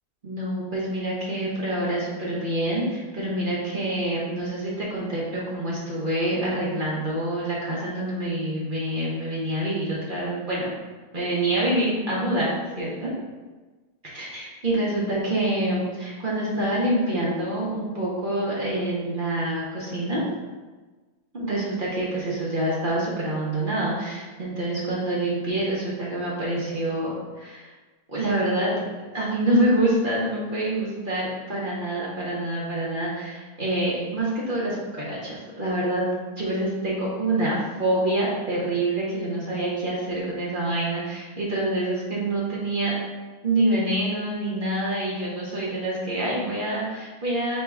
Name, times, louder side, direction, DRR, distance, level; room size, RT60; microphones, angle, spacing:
voice 1, 0.2-10.7 11.1-13.1 14.1-20.2 21.3-27.7 28.1-28.7 29.1-36.0 36.4-42.9 43.4-47.6, right 1 dB, 40° right, -6 dB, 0.8 m, -26 dB
4.5 x 3.1 x 3.5 m, 1.3 s
omnidirectional pair, 1.8 m